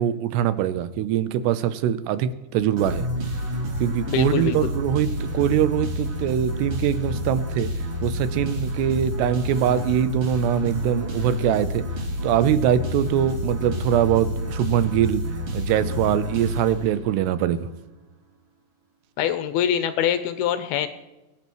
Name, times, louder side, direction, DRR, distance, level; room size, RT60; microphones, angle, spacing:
voice 1, 0.0-3.1 3.8-7.7 8.0-11.8 12.2-15.2 15.5-17.7, right 10 dB, 80° right, 13 dB, 2.8 m, -23 dB
sound 1, 2.8-17.3, left 1 dB, 45° right, 1.8 m, -29 dB
voice 2, 4.1-4.7 19.2-20.9, left 10 dB, 80° left, 10 dB, 2.3 m, -24 dB
22.5 x 11.0 x 3.1 m, 1.0 s
omnidirectional pair, 5.0 m